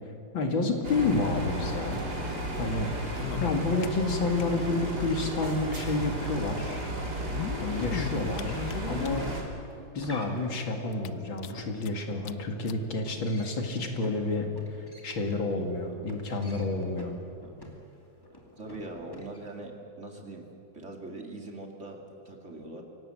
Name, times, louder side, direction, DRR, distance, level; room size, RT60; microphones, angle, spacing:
voice 1, 0.3-2.0 2.6-6.9 7.6-9.3 9.9-14.5 15.0-17.1, left 3 dB, 85° left, 4 dB, 3.0 m, -30 dB
sound 1, 0.8-9.4, right 1 dB, 55° right, 3.8 m, -34 dB
sound 2, 3.0-4.4 4.7-4.8 5.0-5.1 6.1-6.2 7.1-9.4 10.0-10.1 10.4-10.5 10.9-11.9 12.2-12.3 12.7-12.8 13.6-13.7, left 11 dB, 65° left, 1.1 m, -38 dB
sound 3, 9.6-19.6, equal, 10° left, 2.4 m, -48 dB
voice 2, 18.6-20.5 20.7-22.8, right 2 dB, 35° right, 2 dB, 2.8 m, -42 dB
25.0 x 17.5 x 7.8 m, 2.5 s
omnidirectional pair, 2.1 m